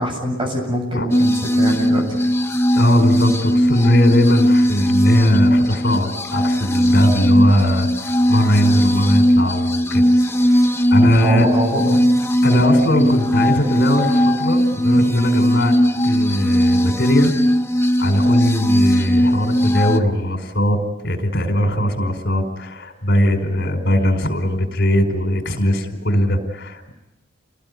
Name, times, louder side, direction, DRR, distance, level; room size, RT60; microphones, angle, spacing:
voice 1, 0.0-2.2 11.0-12.0, right 1 dB, 25° right, 2 dB, 7.6 m, -23 dB
sound 1, 1.1-20.0, equal, 15° left, 1.1 m, -18 dB
voice 2, 2.7-10.0 10.4-11.5 12.4-15.7 16.0-17.4 18.0-26.9, equal, 55° left, 6 dB, 4.9 m, -19 dB
29.5 x 20.5 x 9.6 m, 0.92 s
head